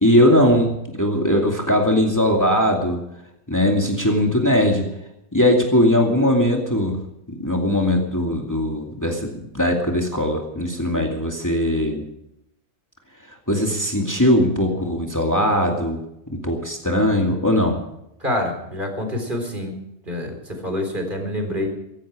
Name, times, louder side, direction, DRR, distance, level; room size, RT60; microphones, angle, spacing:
voice 1, 0.0-3.0 3.5-4.9 5.3-7.0 7.4-12.0 13.5-16.0 16.4-17.8, left 1 dB, 15° left, 1 dB, 2.5 m, -19 dB
voice 2, 18.2-19.7 20.1-20.3 20.6-21.7, left 1 dB, 40° right, 4 dB, 4.1 m, -26 dB
17.0 x 16.0 x 5.0 m, 0.82 s
omnidirectional pair, 1.3 m